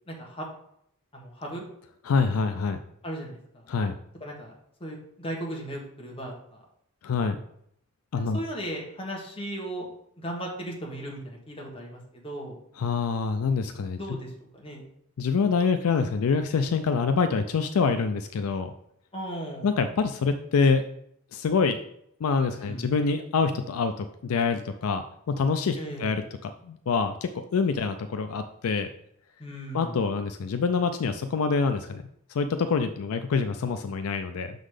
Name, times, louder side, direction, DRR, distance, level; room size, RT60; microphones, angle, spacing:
voice 1, 0.1-0.5 1.1-1.6 3.0-3.4 4.2-4.5 4.8-6.6 8.3-9.9 10.2-12.6 14.0-14.8 19.1-19.7 22.6-22.9 25.8-26.1 29.4-30.0, right 1 dB, 25° left, -2 dB, 1.5 m, -36 dB
voice 2, 2.0-2.8 3.7-4.0 7.0-7.4 8.1-8.4 12.8-14.0 15.2-18.7 19.6-20.8 21.3-21.8 22.2-28.9 29.7-32.0 32.3-34.5, left 5 dB, 70° left, 8 dB, 0.4 m, -26 dB
6.3 x 4.0 x 4.9 m, 0.71 s
head